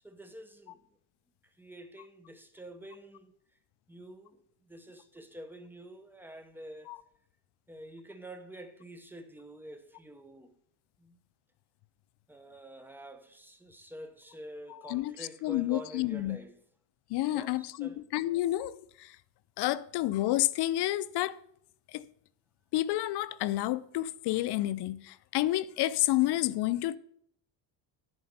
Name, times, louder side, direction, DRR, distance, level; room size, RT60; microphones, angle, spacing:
voice 1, 0.0-0.8 1.4-3.3 3.9-6.9 7.7-10.6 11.0-11.2 12.3-16.6 17.3-18.0, right 1 dB, 5° right, 0.9 m, -48 dB
voice 2, 14.7-16.4 17.1-19.2 19.6-21.4 21.9-22.0 22.7-27.0, left 15 dB, 65° left, 0.5 m, -30 dB
10.5 x 4.3 x 7.0 m
cardioid pair, 130°, 44 cm